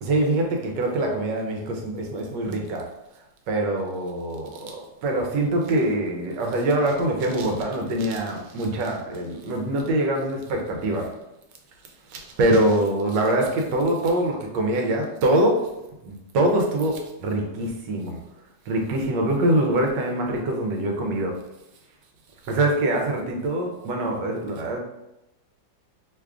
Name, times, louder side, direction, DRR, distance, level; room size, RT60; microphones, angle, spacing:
voice 1, 0.0-2.9 3.5-11.1 12.1-15.7 16.0-18.2 18.6-21.3 22.4-24.8, right 1 dB, 80° right, 2 dB, 1.3 m, -24 dB
3.2 x 2.4 x 3.4 m, 0.92 s
omnidirectional pair, 1.9 m